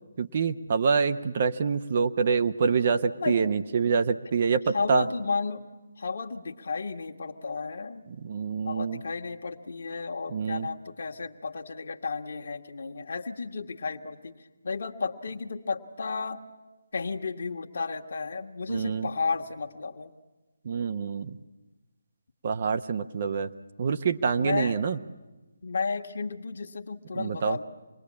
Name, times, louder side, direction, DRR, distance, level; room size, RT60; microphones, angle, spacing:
voice 1, 0.2-5.1 8.1-9.0 10.3-10.7 18.7-19.1 20.6-21.4 22.4-23.5 23.8-25.0 27.1-27.6, right 5 dB, 40° right, 9 dB, 0.8 m, -26 dB
voice 2, 4.7-5.7 6.0-8.1 8.6-14.3 14.6-16.4 16.9-20.1 24.3-24.8 25.6-27.6, left 4 dB, 55° left, 3 dB, 1.5 m, -33 dB
26.5 x 20.5 x 8.6 m, 1.2 s
figure-of-eight pair, 150°, 0 cm